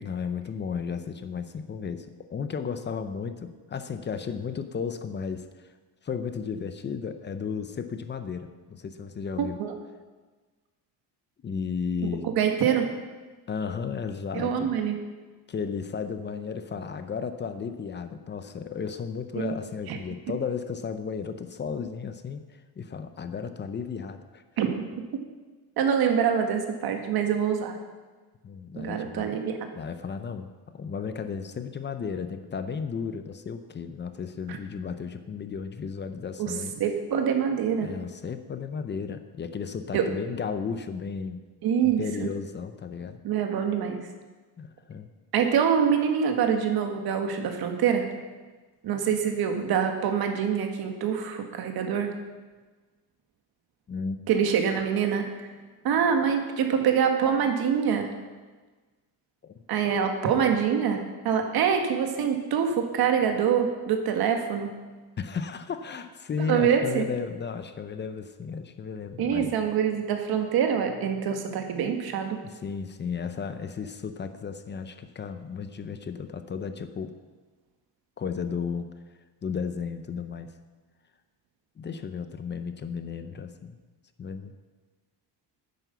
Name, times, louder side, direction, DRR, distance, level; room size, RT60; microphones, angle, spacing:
voice 1, 0.0-5.7 6.0-9.6 11.4-12.3 13.5-14.7 15.5-22.4 22.8-24.4 28.4-29.4 29.7-36.8 37.8-41.4 41.8-43.2 44.6-45.1 53.9-54.2 59.4-59.5 65.2-69.5 72.4-77.1 78.2-78.9 79.4-80.5 81.8-83.8 84.2-84.5, left 6 dB, 25° left, 9 dB, 0.7 m, -34 dB
voice 2, 9.4-9.8 12.0-12.1 12.4-12.9 14.3-15.0 19.4-19.5 19.9-20.0 24.6-24.7 25.8-27.8 28.8-29.6 34.5-34.6 36.4-37.9 39.9-40.0 41.6-42.3 43.2-44.0 45.3-48.1 48.8-52.1 54.3-55.3 55.8-58.1 59.7-64.7 66.5-67.1 69.2-72.4, right 7 dB, 60° right, 4 dB, 1.8 m, -25 dB
9.7 x 9.4 x 6.9 m, 1.3 s
cardioid pair, 155°, 41 cm